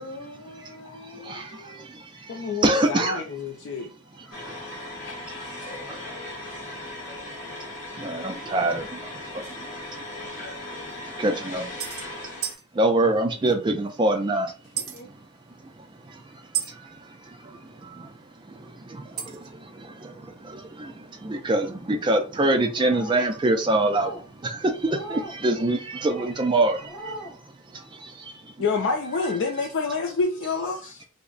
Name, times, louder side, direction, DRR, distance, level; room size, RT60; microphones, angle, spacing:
voice 1, 0.0-1.9 4.2-4.4 14.8-15.1, left 2 dB, 70° left, 0.9 m, -43 dB
voice 2, 1.1-3.2 4.4-4.8 5.3-5.5 5.9-6.0 8.0-9.7 9.9-10.0 11.0-11.8 12.7-14.5 16.1-16.2 16.7-18.1 18.5-24.1 24.4-27.2 27.7-28.4, right 2 dB, 20° right, 0.3 m, -26 dB
voice 3, 2.3-3.9 5.0-5.6 28.6-31.0, left 4 dB, 55° left, 0.4 m, -28 dB
sound 1, 4.3-12.5, left 1 dB, 35° left, 0.9 m, -38 dB
sound 2, 9.4-9.5 10.5-10.6 10.9-11.0 11.8-12.1 12.4-12.6 14.8-15.0 16.5-16.7 19.2-19.5, right 10 dB, 70° right, 0.7 m, -31 dB
sound 3, 22.8-23.3 23.8-24.3 24.8-25.4 26.0-26.3 26.8-27.3, right 1 dB, 10° left, 0.9 m, -39 dB
3.3 x 2.1 x 3.7 m
head